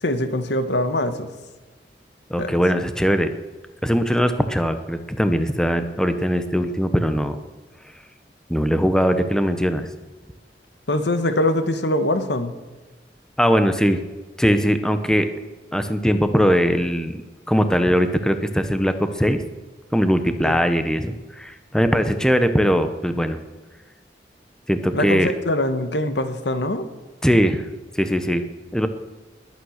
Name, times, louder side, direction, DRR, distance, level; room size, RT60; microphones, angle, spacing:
voice 1, 0.0-1.3 2.4-2.5 10.9-12.5 20.4-20.6 24.9-26.9, left 1 dB, 85° left, 9 dB, 1.4 m, -23 dB
voice 2, 2.3-3.3 3.8-7.4 8.5-9.9 13.4-14.0 14.4-15.3 15.7-17.1 17.5-19.4 19.9-23.4 24.7-25.3 27.2-27.6 27.9-28.4 28.7-28.9, equal, 5° left, 8 dB, 0.9 m, -20 dB
21.0 x 9.1 x 6.5 m, 1.2 s
head